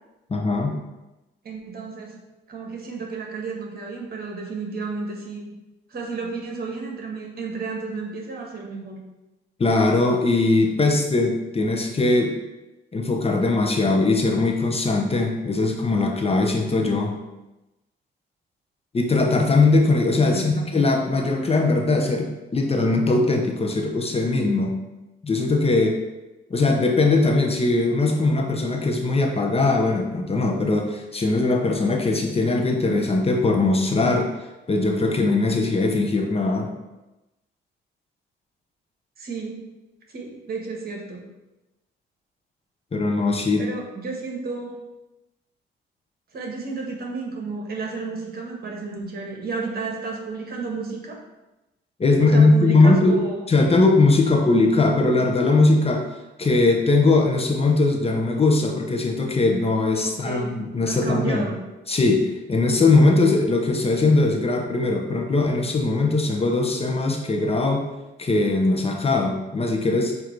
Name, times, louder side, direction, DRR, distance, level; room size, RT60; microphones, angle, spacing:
voice 1, 0.3-0.8 9.6-12.3 12.9-17.1 18.9-24.8 25.2-26.0 26.5-34.3 34.7-36.7 42.9-43.6 52.0-56.1 56.4-61.4 61.9-67.9 68.2-70.1, left 3 dB, 30° left, 2 dB, 0.9 m, -20 dB
voice 2, 1.4-2.2 2.5-5.5 5.9-9.0 20.2-20.6 39.2-39.7 40.1-41.3 43.6-44.8 46.3-51.2 52.2-53.5 60.0-60.6 60.9-61.6, right 4 dB, 50° right, 0 dB, 1.5 m, -32 dB
7.3 x 2.8 x 4.6 m, 1.0 s
cardioid pair, 90°, 20 cm